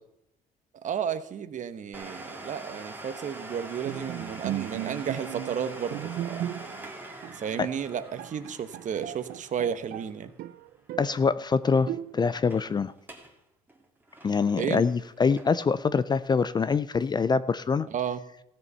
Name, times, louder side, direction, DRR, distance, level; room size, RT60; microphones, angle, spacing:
voice 1, 0.8-6.5 7.3-10.3 14.6-14.9 17.9-18.2, right 8 dB, 50° right, 11 dB, 1.0 m, -32 dB
Domestic sounds home sounds, 1.9-11.4 11.6-11.7 12.3-12.7 13.0-13.4 13.7-15.8 16.2-16.3 17.0-17.1, right 2 dB, 10° right, 2.0 m, -44 dB
Bowed string instrument, 3.9-6.9 7.2-7.4 7.9-8.0 8.2-10.1 10.4-11.2 11.9-12.5, right 13 dB, 70° right, 0.5 m, -36 dB
voice 2, 11.0-12.9 14.2-17.9, left 5 dB, 25° left, 16 dB, 0.4 m, -25 dB
16.0 x 6.9 x 5.6 m, 0.79 s
cardioid pair, 110°, 17 cm